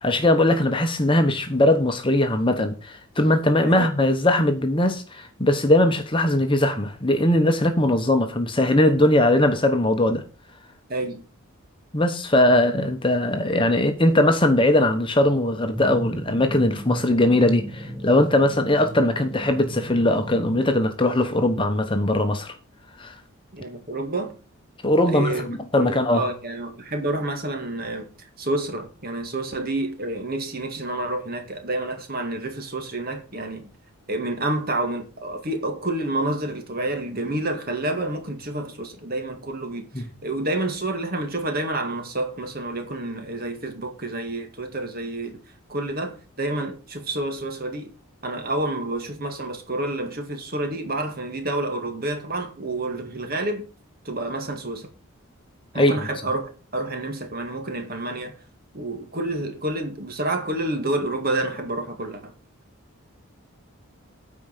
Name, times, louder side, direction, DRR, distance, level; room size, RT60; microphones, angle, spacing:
voice 1, 0.0-10.2 11.9-22.5 23.0-23.2 24.8-26.3 39.9-40.0 55.7-55.9, left 1 dB, 25° left, 1.0 m, -20 dB
voice 2, 10.9-11.2 12.5-12.6 23.5-24.3 25.1-33.7 34.1-45.4 45.7-47.9 48.2-53.7 54.1-54.9 55.7-58.4 58.7-62.3, right 2 dB, 45° right, 2.0 m, -29 dB
sound 1, 15.7-20.8, equal, 5° left, 1.6 m, -34 dB
9.3 x 4.8 x 6.7 m
head